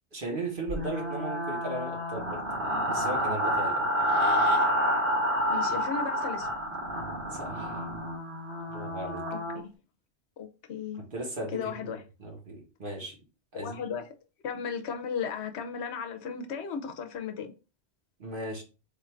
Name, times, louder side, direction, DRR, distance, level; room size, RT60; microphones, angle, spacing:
voice 1, 0.1-2.4 2.9-3.9 7.3-7.9 8.7-9.2 11.0-11.8 12.2-13.2 13.5-13.8 18.2-18.6, right 1 dB, 50° right, 1.4 m, -37 dB
sound 1, 0.7-9.6, equal, 70° right, 2.1 m, -29 dB
voice 2, 5.5-6.5 9.3-9.4 10.4-11.0 11.5-12.0 13.5-14.0 14.4-17.5, left 6 dB, 80° left, 0.9 m, -35 dB
3.7 x 2.5 x 4.3 m
omnidirectional pair, 1.1 m